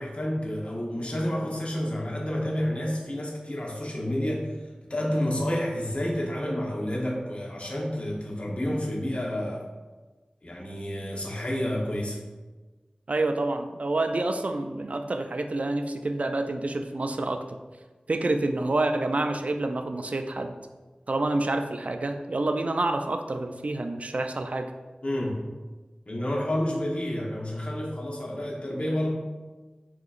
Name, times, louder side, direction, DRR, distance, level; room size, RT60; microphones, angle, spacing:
voice 1, 0.0-4.5 4.9-9.6 10.4-12.2 25.0-25.4 26.1-29.1, left 1 dB, 50° left, -2 dB, 1.0 m, -29 dB
voice 2, 13.1-17.4 18.1-20.5 21.1-24.7, right 2 dB, 60° right, 7 dB, 0.4 m, -28 dB
6.7 x 2.9 x 2.4 m, 1.3 s
wide cardioid pair, 45°, 3 cm